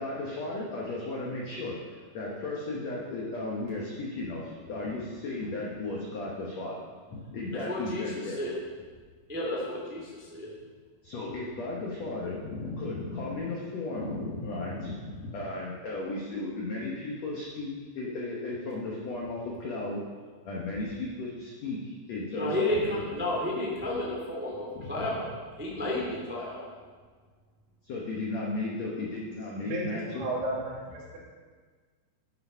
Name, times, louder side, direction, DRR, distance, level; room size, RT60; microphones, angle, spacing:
voice 1, 0.0-6.8 7.1-8.4 11.0-20.0 20.4-23.0 24.7-25.2 27.8-30.2, left 2 dB, 75° left, -4 dB, 1.5 m, -35 dB
voice 2, 7.5-8.1 8.4-8.5 9.3-10.5 22.3-25.3 25.6-26.6, left 1 dB, 10° right, -4 dB, 0.6 m, -31 dB
voice 3, 30.1-31.2, right 1 dB, 70° right, -5 dB, 4.6 m, -33 dB
11.5 x 6.9 x 5.6 m, 1.5 s
omnidirectional pair, 5.0 m